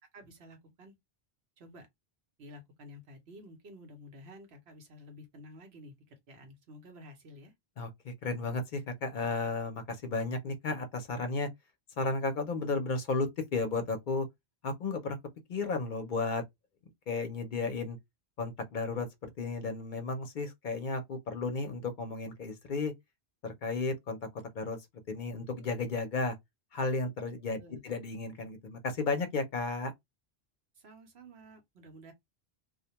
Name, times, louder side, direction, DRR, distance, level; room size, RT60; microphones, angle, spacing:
voice 1, 0.1-1.0 1.6-1.9 2.4-7.5 27.6-27.8 30.7-32.1, equal, 80° right, 1.1 m, -51 dB
voice 2, 7.8-11.5 12.0-14.3 14.6-15.2 15.5-16.4 17.1-18.0 18.4-22.9 23.4-24.2 24.5-24.8 25.1-26.4 26.7-29.9, left 3 dB, 55° left, 0.6 m, -33 dB
2.3 x 2.1 x 2.8 m
omnidirectional pair, 1.1 m